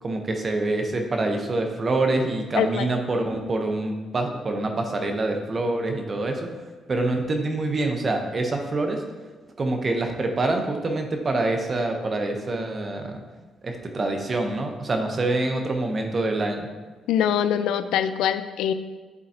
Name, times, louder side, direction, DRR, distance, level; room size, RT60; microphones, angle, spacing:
voice 1, 0.0-6.5 6.9-9.0 9.6-13.2 13.6-16.7, right 2 dB, 35° right, 3 dB, 0.9 m, -26 dB
voice 2, 2.6-2.9 17.1-18.7, left 9 dB, 90° left, 11 dB, 0.3 m, -23 dB
11.0 x 3.8 x 2.9 m, 1.3 s
cardioid pair, 90°, 0 cm